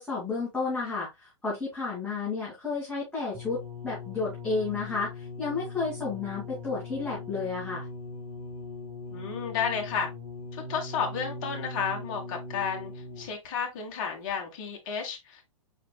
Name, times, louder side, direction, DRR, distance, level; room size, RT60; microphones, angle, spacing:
voice 1, 0.0-7.9, left 4 dB, 5° left, 2.3 m, -32 dB
sound 1, 3.3-13.5 14.3-14.4, left 3 dB, 45° right, 1.7 m, -40 dB
voice 2, 9.1-10.1 10.5-12.9 13.2-15.4, left 6 dB, 40° left, 1.5 m, -32 dB
4.9 x 4.7 x 2.2 m
figure-of-eight pair, 110°, 17 cm